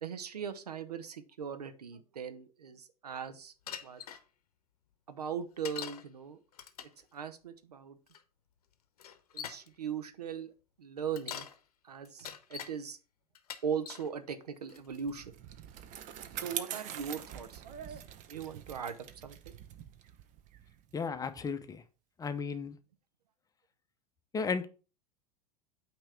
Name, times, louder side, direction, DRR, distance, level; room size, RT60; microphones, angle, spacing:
voice 1, 0.0-3.5 3.8-4.0 5.1-6.4 7.1-8.0 9.3-10.5 10.8-11.4 11.9-13.0 13.6-15.3 16.4-18.0 18.3-19.5, right 7 dB, 80° right, 0.8 m, -39 dB
Bicycle, 3.7-4.2 5.6-6.0 6.5-7.0 8.1-8.2 9.0-9.7 11.0-11.6 12.1-12.7 13.4-14.1 14.7-15.1, left 8 dB, 75° left, 0.8 m, -43 dB
Bicycle 2, 14.8-21.5, right 10 dB, 40° right, 0.8 m, -44 dB
voice 2, 20.9-21.8 22.2-22.8 24.3-24.6, left 5 dB, 20° left, 0.7 m, -34 dB
8.7 x 3.0 x 4.8 m
figure-of-eight pair, 85°, 20 cm